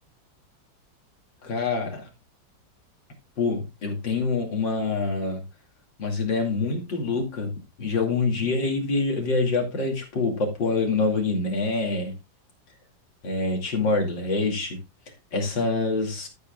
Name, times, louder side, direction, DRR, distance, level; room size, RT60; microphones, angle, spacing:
voice 1, 1.4-2.1 3.4-5.4 6.0-7.5 7.8-12.1 13.2-14.8 15.3-16.3, left 3 dB, 80° left, 3.2 m, -25 dB
14.0 x 8.0 x 2.4 m
omnidirectional pair, 2.0 m